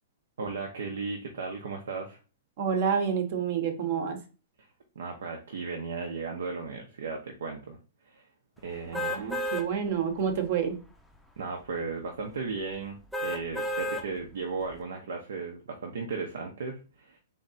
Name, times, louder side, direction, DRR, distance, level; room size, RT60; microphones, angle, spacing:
voice 1, 0.4-2.2 4.6-4.7 4.9-7.8 8.1-8.2 8.6-9.4 11.4-17.2, right 4 dB, 80° right, 2 dB, 1.0 m, -36 dB
voice 2, 2.6-4.2 9.0-10.8, right 7 dB, 50° right, 7 dB, 1.1 m, -28 dB
sound 1, 8.9-9.7 10.2-10.3 13.1-14.1 14.6-14.7, equal, ahead, 0.5 m, -31 dB
3.8 x 3.3 x 4.1 m, 0.34 s
hypercardioid pair, 150°, 0 cm